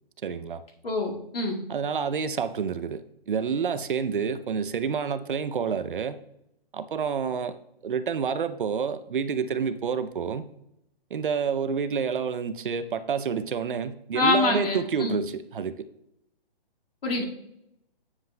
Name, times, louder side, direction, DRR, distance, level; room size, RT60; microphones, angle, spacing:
voice 1, 0.2-0.6 1.7-6.2 6.7-7.6 7.8-10.5 11.1-15.9, right 6 dB, 60° right, 11 dB, 0.6 m, -28 dB
voice 2, 0.8-1.6 14.1-15.2 17.0-17.3, left 3 dB, 70° left, -1 dB, 2.1 m, -25 dB
9.5 x 7.3 x 2.2 m, 0.80 s
hypercardioid pair, 175°, 30 cm